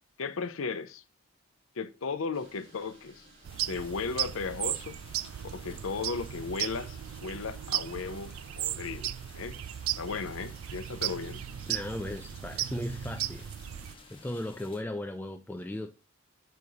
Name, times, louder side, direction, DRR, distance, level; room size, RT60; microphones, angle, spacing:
voice 1, 0.2-1.0 1.7-3.3 3.7-5.0 5.5-9.6 10.0-11.4, left 4 dB, 80° left, 0.6 m, -36 dB
sound 1, 2.3-14.5, right 1 dB, 55° right, 3.3 m, -58 dB
sound 2, 3.4-13.9, right 13 dB, 80° right, 0.3 m, -36 dB
sound 3, 3.5-14.8, left 4 dB, 25° left, 0.7 m, -55 dB
voice 2, 11.7-13.5 14.1-15.9, left 1 dB, 10° left, 0.3 m, -37 dB
5.2 x 4.7 x 4.0 m
head